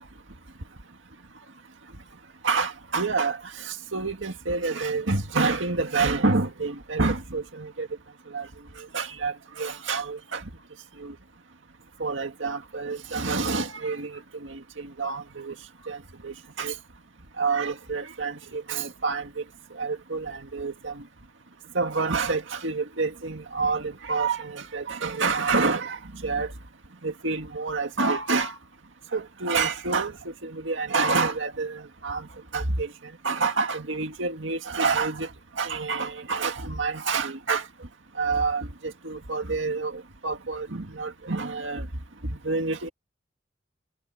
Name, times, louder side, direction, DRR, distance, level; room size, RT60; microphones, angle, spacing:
voice 1, 2.4-7.9 8.3-8.5 8.9-10.4 11.0-11.2 12.0-15.5 15.9-16.0 16.2-16.7 17.4-19.3 19.8-20.9 21.7-26.5 27.0-28.6 29.1-30.1 30.4-32.3 32.5-32.9 33.2-35.3 35.6-37.6 38.2-41.9 42.4-42.9, right 4 dB, 85° right, 2.0 m, -28 dB
head